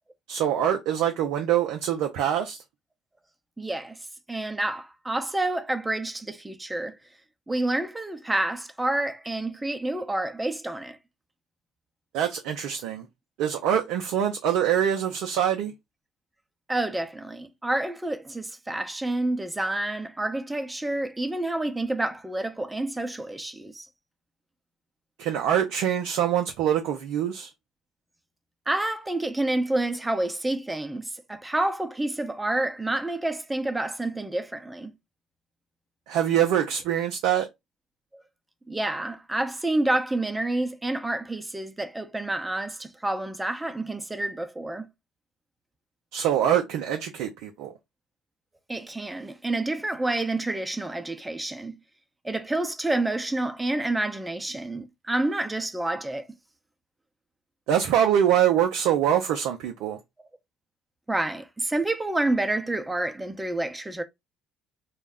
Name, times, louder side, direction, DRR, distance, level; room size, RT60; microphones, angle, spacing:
voice 1, 0.3-2.6 12.1-13.1 13.4-15.7 25.2-27.5 36.1-37.5 46.1-47.7 57.7-60.0, right 10 dB, 70° right, 0.4 m, -24 dB
voice 2, 3.6-4.0 4.3-7.0 7.5-11.0 16.7-23.9 28.7-34.9 38.1-38.2 38.7-44.8 48.7-51.8 52.2-56.3 61.1-64.0, right 2 dB, 15° right, 0.6 m, -28 dB
2.3 x 2.0 x 3.5 m
hypercardioid pair, 60°, 0 cm